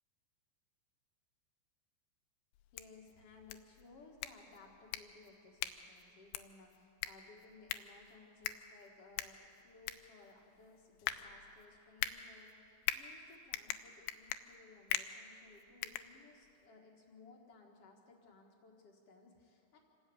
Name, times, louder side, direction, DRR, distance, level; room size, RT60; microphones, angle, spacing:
sound 1, 2.5-16.7, left 13 dB, 80° left, 2.7 m, -43 dB
voice 1, 2.7-19.8, left 3 dB, 60° left, 1 dB, 1.5 m, -60 dB
26.5 x 13.5 x 8.6 m, 2.7 s
omnidirectional pair, 5.5 m